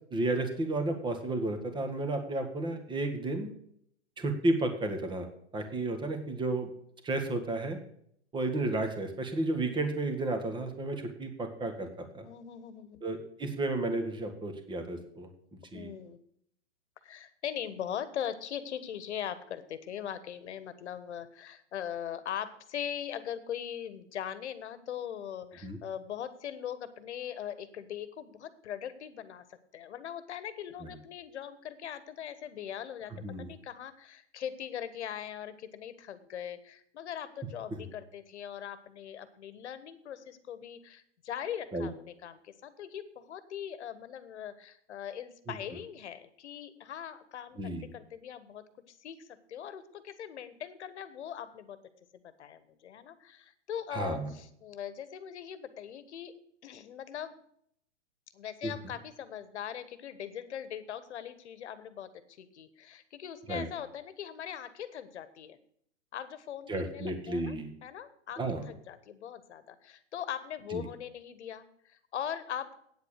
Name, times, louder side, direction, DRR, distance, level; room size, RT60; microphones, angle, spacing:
voice 1, 0.1-3.5 4.2-5.3 5.5-6.7 7.0-7.8 8.3-12.3 13.0-15.3 15.7-15.9 25.6-25.8 30.8-30.9 33.1-33.5 37.7-37.8 41.7-41.9 45.5-45.6 47.6-47.9 53.9-54.3 58.6-58.7 63.5-63.7 66.7-67.7 68.4-68.7 70.7-70.8, right 2 dB, 15° right, 6 dB, 1.7 m, -32 dB
voice 2, 12.2-13.0 15.7-16.2 17.0-29.4 29.7-33.1 33.4-51.8 52.2-56.3 56.6-57.3 58.3-65.6 66.1-67.6 67.8-68.4 68.7-72.8, left 9 dB, 70° left, 13 dB, 1.4 m, -41 dB
9.1 x 8.0 x 6.5 m, 0.68 s
hypercardioid pair, 125°, 35 cm